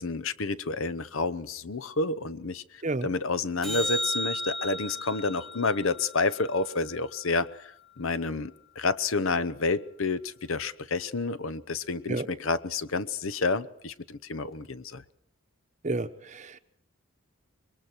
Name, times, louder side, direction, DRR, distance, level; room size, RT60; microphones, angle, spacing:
voice 1, 0.0-15.0, left 3 dB, 70° left, 15 dB, 0.8 m, -30 dB
sound 1, 3.6-8.1 14.6-14.7, left 1 dB, ahead, 1.8 m, -36 dB
voice 2, 15.8-16.6, right 2 dB, 35° right, 9 dB, 0.9 m, -31 dB
26.0 x 22.0 x 4.5 m, 0.67 s
head